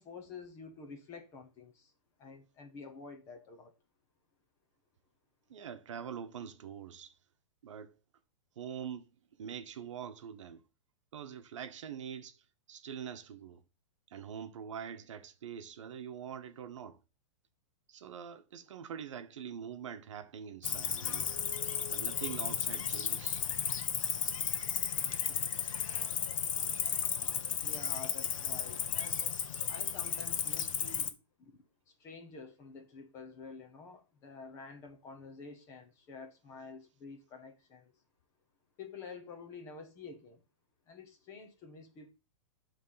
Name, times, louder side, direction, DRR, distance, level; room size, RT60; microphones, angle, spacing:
voice 1, 0.0-1.9 2.2-3.7 27.6-29.3 29.7-31.6 31.9-37.9 38.8-40.4 40.9-42.1, left 4 dB, 15° left, 0.9 m, -49 dB
voice 2, 5.5-7.1 7.6-7.9 8.6-9.1 9.4-10.6 11.1-12.4 12.7-13.6 14.1-17.0 17.9-21.3 21.9-23.4 25.3-25.4, right 8 dB, 70° right, 1.0 m, -44 dB
Cricket, 20.6-31.1, left 8 dB, 90° left, 1.1 m, -34 dB
9.1 x 3.4 x 5.5 m
supercardioid pair, 180°, 17 cm